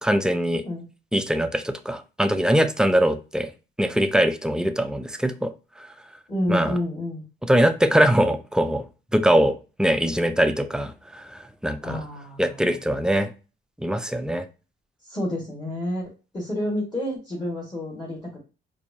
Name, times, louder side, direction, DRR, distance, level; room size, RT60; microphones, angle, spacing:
voice 1, 0.0-0.6 1.1-3.5 3.8-5.5 5.8-5.9 6.5-6.8 7.4-8.8 9.1-12.0 12.4-13.3 13.8-14.5, equal, 5° right, 9 dB, 0.4 m, -22 dB
voice 2, 6.3-7.2 11.8-12.8 15.0-18.4, left 1 dB, 20° left, -4 dB, 1.7 m, -29 dB
4.3 x 2.6 x 2.7 m, 0.32 s
cardioid pair, 90°, 20 cm